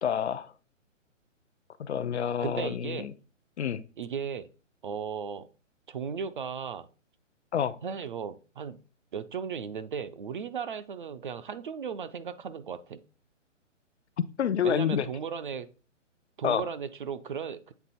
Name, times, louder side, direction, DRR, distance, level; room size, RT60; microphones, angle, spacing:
voice 1, 0.0-0.5 1.8-3.1 3.6-3.8 7.5-7.8 14.4-15.1 16.4-16.6, left 8 dB, 60° left, 14 dB, 0.6 m, -28 dB
voice 2, 2.4-3.1 4.0-4.5 4.8-5.5 5.9-6.9 7.8-8.8 9.1-13.0 14.6-15.7 16.4-17.7, right 6 dB, 40° right, 12 dB, 0.5 m, -36 dB
8.1 x 3.3 x 4.1 m, 0.35 s
hypercardioid pair, 145°, 38 cm